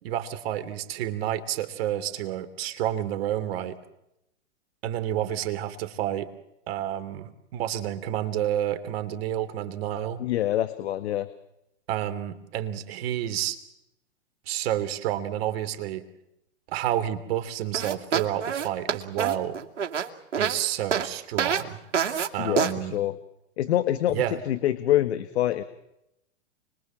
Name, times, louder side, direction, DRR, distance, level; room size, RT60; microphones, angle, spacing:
voice 1, 0.0-3.8 4.8-6.3 6.7-10.3 11.9-13.6 14.5-16.0 16.7-19.6 20.4-21.8 22.3-23.0 24.1-24.4, right 12 dB, 55° right, 10 dB, 3.0 m, -29 dB
voice 2, 10.2-11.3 22.4-23.2 23.6-25.6, left 13 dB, 65° left, 11 dB, 1.8 m, -25 dB
Extremelly Farting, 17.7-20.6 20.9-21.1 21.4-21.6 21.9-22.3 22.6-22.7, right 7 dB, 85° right, 2.6 m, -26 dB
29.5 x 22.5 x 7.6 m, 0.84 s
hypercardioid pair, 120°, 36 cm